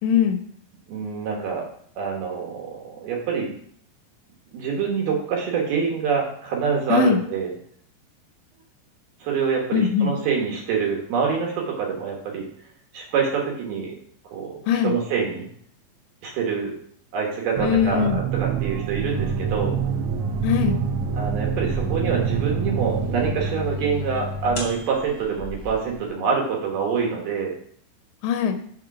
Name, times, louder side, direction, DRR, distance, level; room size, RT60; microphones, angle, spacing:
voice 1, 0.0-0.4 6.9-7.2 9.7-10.1 14.7-14.9 17.6-18.2 20.4-20.8 28.2-28.6, left 7 dB, 85° left, 7 dB, 3.0 m, -20 dB
voice 2, 0.9-1.7 2.0-3.5 4.5-7.5 9.2-12.5 12.9-14.0 14.3-14.5 14.8-15.5 16.2-16.8 17.1-19.8 21.1-27.5, right 6 dB, 65° right, 0 dB, 3.1 m, -26 dB
sound 1, 17.6-23.6, right 12 dB, 80° right, 2.6 m, -27 dB
sound 2, 19.0-26.0, left 2 dB, 35° left, 1.0 m, -31 dB
6.9 x 6.4 x 4.8 m, 0.62 s
omnidirectional pair, 5.1 m